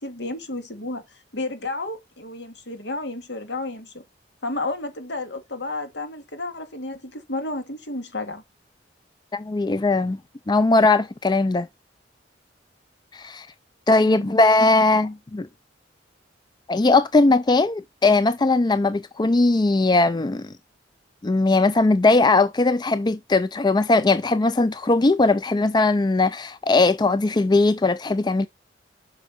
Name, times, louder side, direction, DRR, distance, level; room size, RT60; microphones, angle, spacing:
voice 1, 0.0-1.0 1.3-4.0 4.4-8.4 14.0-14.4, left 2 dB, 70° left, 2.3 m, -32 dB
voice 2, 9.3-10.2 10.5-11.7 13.1-13.5 13.9-15.5 16.7-20.5 21.2-28.5, left 3 dB, 25° left, 0.4 m, -19 dB
8.1 x 6.2 x 4.3 m
head